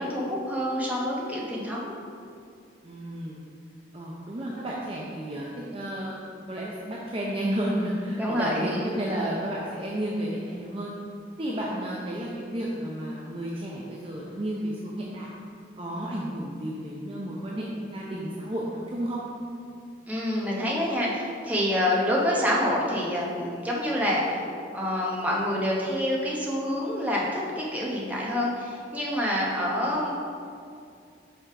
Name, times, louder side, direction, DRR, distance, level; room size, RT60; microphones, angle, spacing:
voice 1, 0.0-1.9 8.1-8.8 20.1-24.4 24.7-30.1, left 1 dB, 10° right, -5 dB, 1.1 m, -27 dB
voice 2, 2.8-3.4 3.9-6.2 6.5-10.9 11.4-15.3 15.8-19.2, right 1 dB, 30° right, -4 dB, 0.6 m, -32 dB
5.6 x 5.6 x 4.8 m, 2.4 s
head